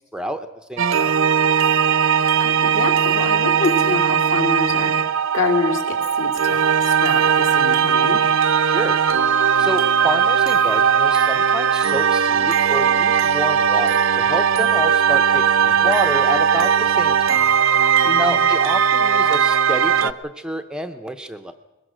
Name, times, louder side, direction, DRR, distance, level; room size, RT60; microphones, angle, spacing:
voice 1, 0.1-1.2 8.7-9.0 9.6-17.4 18.2-21.5, equal, 5° right, 7 dB, 0.7 m, -28 dB
sound 1, 0.8-20.1, right 7 dB, 60° right, 0.6 m, -18 dB
voice 2, 2.4-8.2 18.0-18.4, left 3 dB, 60° left, 2 dB, 2.9 m, -26 dB
22.0 x 21.0 x 6.2 m, 1.1 s
head